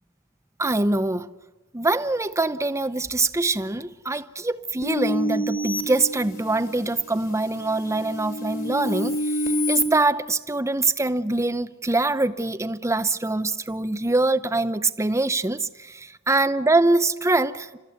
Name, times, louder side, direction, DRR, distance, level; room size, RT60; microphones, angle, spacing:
voice 1, 0.6-1.3 1.7-17.8, right 2 dB, 15° right, 0.7 m, -24 dB
sound 1, 4.8-6.8 7.3-9.8, left 1 dB, 45° left, 3.0 m, -28 dB
30.0 x 14.0 x 9.4 m
head